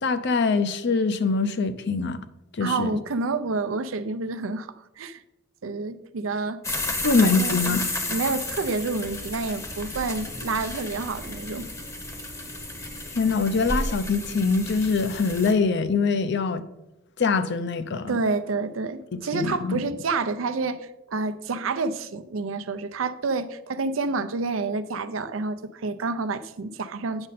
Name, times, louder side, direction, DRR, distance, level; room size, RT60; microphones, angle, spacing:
voice 1, 0.0-2.2 2.6-3.0 7.0-7.8 13.1-16.6 17.2-18.2 19.1-19.8, left 4 dB, 60° left, 0.6 m, -23 dB
voice 2, 2.6-5.2 5.6-6.6 7.2-7.8 8.0-11.7 18.1-27.3, right 3 dB, 85° right, 0.6 m, -29 dB
sound 1, 6.6-15.5, left 2 dB, 15° left, 0.8 m, -32 dB
8.8 x 6.4 x 4.1 m
head